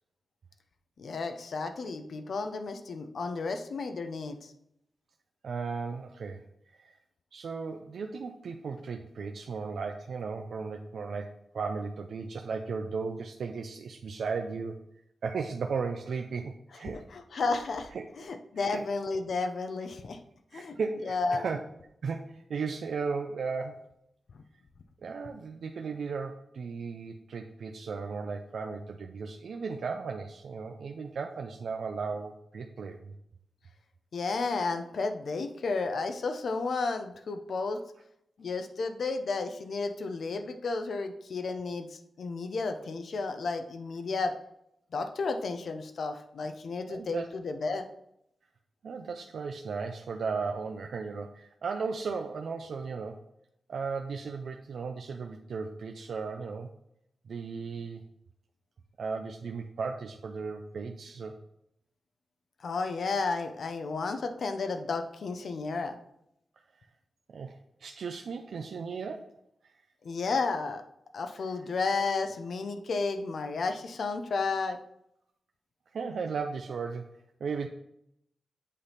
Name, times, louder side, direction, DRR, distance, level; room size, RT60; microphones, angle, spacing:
voice 1, 1.0-4.4 17.1-17.9 18.2-20.2 20.5-20.8 21.0-21.5 34.1-37.8 38.4-44.3 44.9-47.8 62.6-66.0 70.0-70.8 71.1-74.8, left 4 dB, 65° left, 7 dB, 0.6 m, -32 dB
voice 2, 5.4-6.4 6.7-7.0 7.3-14.8 15.2-17.0 17.9-18.1 18.6-18.8 20.5-21.6 22.0-23.9 25.0-33.1 46.9-47.3 48.8-53.2 53.7-56.7 57.3-58.0 59.0-61.4 67.3-69.3 75.9-77.7, right 5 dB, 80° right, 4 dB, 0.5 m, -36 dB
8.4 x 3.4 x 5.6 m, 0.77 s
wide cardioid pair, 165°, 0 cm